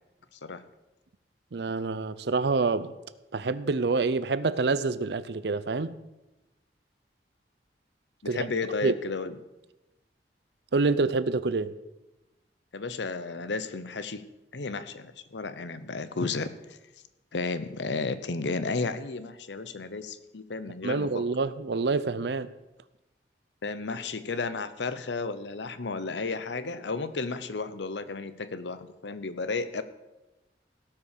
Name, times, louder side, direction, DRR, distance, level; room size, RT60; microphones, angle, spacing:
voice 1, 1.5-2.9 3.3-6.0 8.3-8.5 8.8-8.9 10.7-11.7 20.8-22.5, right 3 dB, 70° right, 0.6 m, -27 dB
voice 2, 8.2-9.3 12.7-14.2 14.5-16.8 17.3-21.2 23.6-29.8, left 3 dB, 90° left, 0.8 m, -33 dB
17.0 x 5.9 x 6.6 m
head